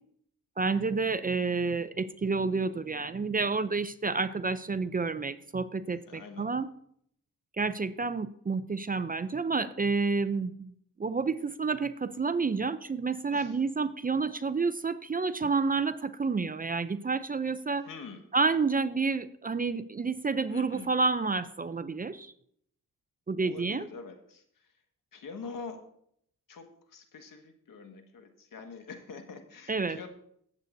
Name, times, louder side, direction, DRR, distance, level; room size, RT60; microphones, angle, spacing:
voice 1, 0.6-6.7 7.6-10.7 11.0-17.9 18.3-22.3 23.3-23.9 29.7-30.0, right 4 dB, 25° right, 13 dB, 0.5 m, -29 dB
voice 2, 6.1-6.5 13.3-13.6 17.8-18.2 20.5-20.9 23.4-24.7 25.1-25.8 26.5-30.1, left 5 dB, 65° left, 5 dB, 1.7 m, -45 dB
18.0 x 8.1 x 2.7 m, 0.68 s
cardioid pair, 80°, 35 cm